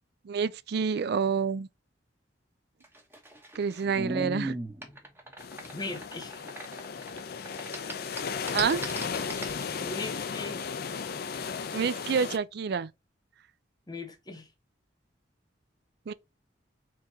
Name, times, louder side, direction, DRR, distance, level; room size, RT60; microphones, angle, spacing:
voice 1, 0.3-1.7 3.6-4.6 8.5-8.8 11.7-12.9 16.1-16.2, right 6 dB, 60° right, 0.4 m, -28 dB
sound 1, 2.8-7.2 7.5-9.6, right 1 dB, 10° right, 1.0 m, -37 dB
sound 2, 5.4-12.4, left 6 dB, 55° left, 0.5 m, -35 dB
voice 2, 5.7-6.4 9.6-10.6 13.9-14.5, left 3 dB, 20° left, 1.0 m, -39 dB
4.6 x 3.8 x 2.7 m
head